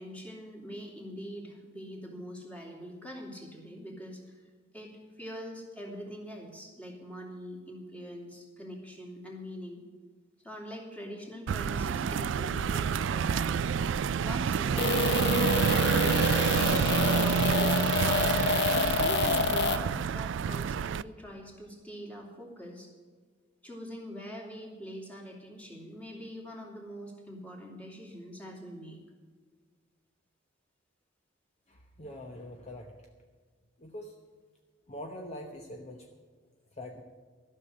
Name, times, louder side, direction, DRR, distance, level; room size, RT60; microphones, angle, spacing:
voice 1, 0.0-4.4 4.7-9.8 10.4-13.6 14.2-15.6 15.9-18.0 18.6-22.9 23.6-29.0, equal, 10° left, -2 dB, 2.7 m, -43 dB
sound 1, 11.5-21.0, right 7 dB, 75° right, 0.3 m, -28 dB
sound 2, 14.8-19.8, left 4 dB, 65° left, 0.9 m, -28 dB
voice 2, 31.7-32.9 33.8-34.2 34.9-36.1 36.8-37.0, left 1 dB, 35° left, 2 dB, 0.9 m, -43 dB
13.0 x 6.6 x 10.0 m, 1.5 s
head